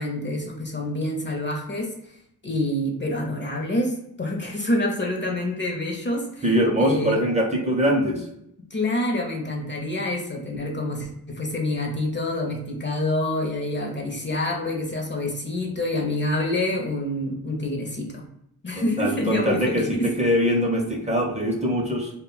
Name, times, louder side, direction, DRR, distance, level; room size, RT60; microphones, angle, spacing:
voice 1, 0.0-1.9 2.4-6.5 6.8-7.2 8.7-18.2 18.6-20.1, left 1 dB, 30° left, 1 dB, 0.5 m, -27 dB
voice 2, 6.4-8.3 18.8-22.1, equal, 20° right, -1 dB, 0.5 m, -23 dB
2.1 x 2.0 x 3.7 m, 0.76 s
cardioid pair, 75°, 38 cm